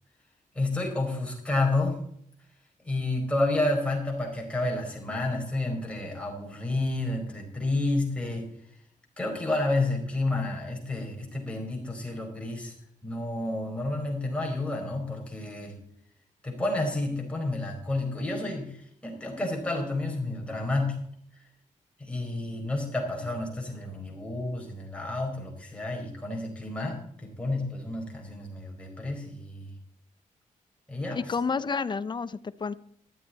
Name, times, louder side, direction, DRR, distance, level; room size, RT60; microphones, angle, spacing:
voice 1, 0.5-2.0 2.8-8.5 9.2-12.7 13.0-15.8 16.4-21.0 22.0-29.7 30.9-31.2, left 2 dB, 10° left, 4.5 m, -30 dB
voice 2, 31.1-32.7, left 5 dB, 35° left, 0.6 m, -30 dB
15.0 x 12.0 x 4.2 m
wide cardioid pair, 150°, 14 cm